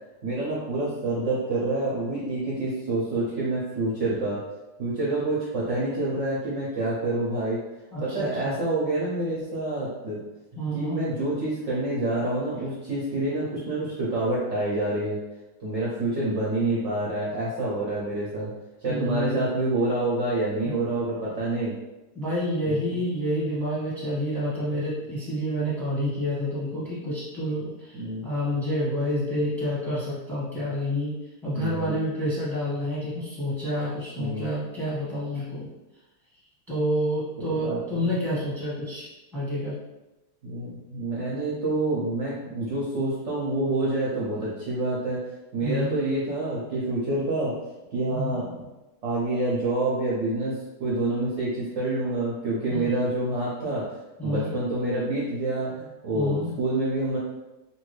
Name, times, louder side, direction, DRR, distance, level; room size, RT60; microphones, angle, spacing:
voice 1, 0.2-4.4 4.8-7.6 8.0-10.2 10.7-15.2 15.6-18.5 18.8-21.8 22.7-23.0 27.9-28.2 31.5-31.9 34.1-34.5 37.4-38.1 40.4-45.2 45.5-47.5 47.9-48.7 49.0-50.5 50.8-53.8 54.2-57.2, right 2 dB, 60° right, -6 dB, 0.8 m, -27 dB
voice 2, 7.9-8.5 10.6-11.0 18.9-19.5 20.6-20.8 22.1-31.1 31.4-35.7 36.7-39.7 45.6-46.0 48.1-48.4 52.7-52.9 54.2-54.5 56.1-56.5, equal, ahead, -9 dB, 1.1 m, -29 dB
2.9 x 2.6 x 3.1 m, 1.0 s
omnidirectional pair, 1.8 m